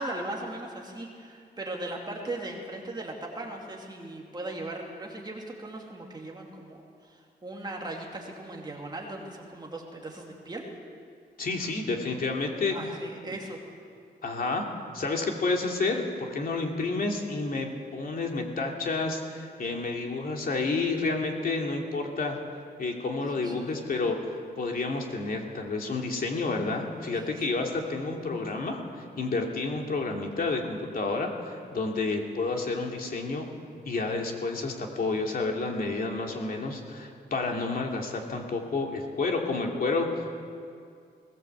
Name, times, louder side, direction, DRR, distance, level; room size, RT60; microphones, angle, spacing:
voice 1, 0.0-10.6 12.7-13.6 23.4-23.7 27.1-27.5, right 2 dB, 25° right, 0 dB, 2.7 m, -38 dB
voice 2, 11.4-12.8 14.2-14.6 14.9-22.4 22.8-33.5 33.8-40.3, left 3 dB, 55° left, 1 dB, 2.8 m, -30 dB
20.0 x 18.5 x 8.1 m, 2.3 s
wide cardioid pair, 175°, 18 cm